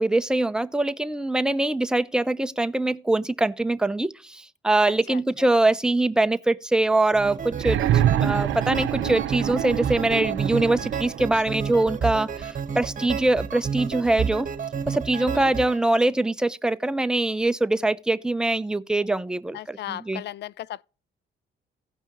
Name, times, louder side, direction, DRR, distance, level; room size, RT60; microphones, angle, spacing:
voice 1, 0.0-7.8 8.2-14.5 14.9-20.2, right 2 dB, 5° right, 0.6 m, -23 dB
sound 1, 7.1-15.8, right 6 dB, 40° right, 1.3 m, -30 dB
sound 2, 7.5-11.4 12.6-12.7, right 12 dB, 75° right, 0.7 m, -26 dB
Marimba xylophone, 11.7-13.5, left 4 dB, 20° left, 4.2 m, -57 dB
voice 2, 15.2-15.5 19.5-20.8, left 13 dB, 60° left, 0.4 m, -36 dB
16.0 x 5.5 x 3.0 m
cardioid pair, 90°, 20 cm